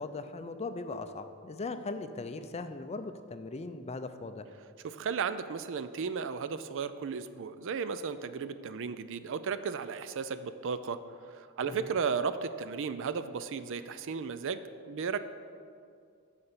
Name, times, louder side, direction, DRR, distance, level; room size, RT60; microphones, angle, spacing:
voice 1, 0.0-4.4 11.7-11.9, left 3 dB, 30° left, 9 dB, 0.5 m, -39 dB
voice 2, 4.8-11.0 11.3-15.2, right 6 dB, 60° right, 12 dB, 0.4 m, -34 dB
9.6 x 5.8 x 6.7 m, 2.3 s
head